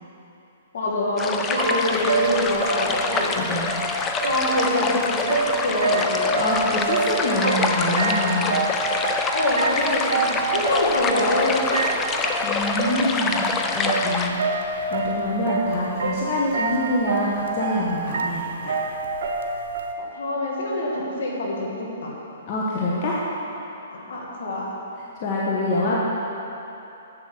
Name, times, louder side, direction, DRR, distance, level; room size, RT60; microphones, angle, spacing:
voice 1, 0.7-3.3 4.2-6.4 9.3-11.8 15.7-15.9 20.0-22.2 23.9-24.8, left 1 dB, 65° left, -3 dB, 2.2 m, -25 dB
sound 1, 1.2-14.3, left 4 dB, 20° left, 0.6 m, -26 dB
sound 2, 1.6-19.9, right 4 dB, 70° right, 0.9 m, -27 dB
voice 2, 3.3-3.8 6.4-8.6 12.4-14.4 14.7-18.8 22.5-23.2 25.2-26.0, left 1 dB, 40° left, -5 dB, 1.4 m, -25 dB
7.6 x 7.5 x 6.2 m, 3.0 s
hypercardioid pair, 140°, 0 cm